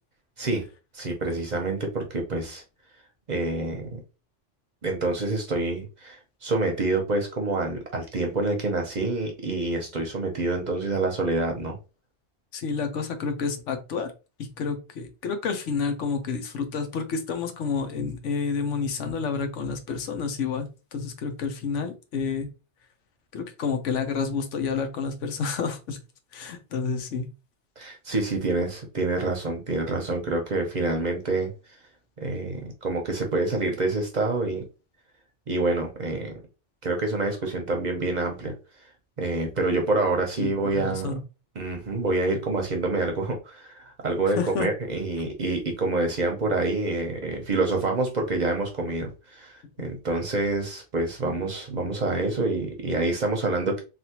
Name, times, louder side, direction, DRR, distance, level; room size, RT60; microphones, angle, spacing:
voice 1, 0.9-2.6 3.3-4.0 4.8-11.8 27.8-31.5 32.2-34.6 35.5-36.4 36.8-38.5 39.2-41.1 41.6-53.8, right 2 dB, 45° right, 0.7 m, -27 dB
voice 2, 12.5-14.1 14.4-22.5 23.3-26.0 26.3-27.3 40.4-41.2 44.4-44.7, left 5 dB, 85° left, 1.1 m, -29 dB
3.4 x 2.4 x 2.8 m
omnidirectional pair, 1.2 m